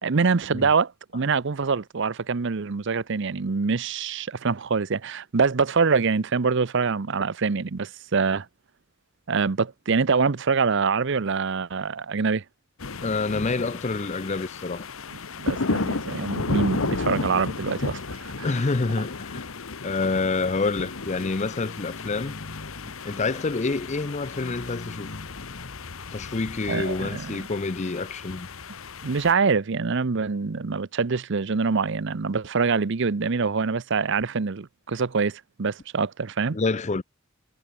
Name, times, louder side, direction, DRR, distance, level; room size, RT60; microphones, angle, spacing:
voice 1, 0.0-8.5 9.3-12.4 15.4-18.5 26.7-27.4 29.0-36.6, right 5 dB, 60° right, 0.7 m, -25 dB
sound 1, 12.8-29.3, left 3 dB, 75° left, 1.2 m, -33 dB
voice 2, 13.0-14.9 18.4-19.4 19.8-22.3 23.0-25.1 26.1-28.5 36.5-37.0, left 3 dB, 35° left, 0.6 m, -27 dB
sound 2, 21.3-23.0 23.3-23.6 24.3-26.2 27.0-27.1, left 2 dB, 55° left, 1.5 m, -42 dB
head